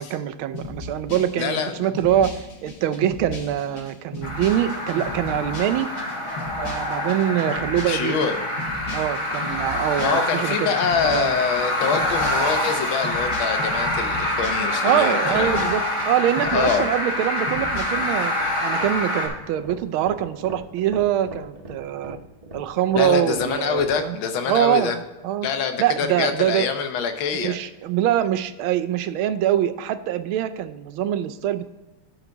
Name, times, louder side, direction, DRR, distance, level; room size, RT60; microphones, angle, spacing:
voice 1, 0.0-5.9 6.6-8.3 8.9-10.7 11.0-11.3 14.8-22.2 22.5-24.2 24.5-25.5 25.8-26.7 27.3-31.6, right 11 dB, 85° right, 12 dB, 1.4 m, -24 dB
sound 1, 0.5-18.3, left 3 dB, 50° left, 1.5 m, -37 dB
voice 2, 1.4-2.2 7.9-8.5 10.0-15.7 16.4-17.0 23.0-25.0 25.4-27.6, left 6 dB, 75° left, 7 dB, 1.7 m, -25 dB
sound 2, 4.2-19.3, left 1 dB, 25° left, 1.7 m, -26 dB
sound 3, 17.4-24.0, right 1 dB, 20° right, 1.2 m, -40 dB
12.5 x 5.0 x 3.9 m, 1.1 s
omnidirectional pair, 2.2 m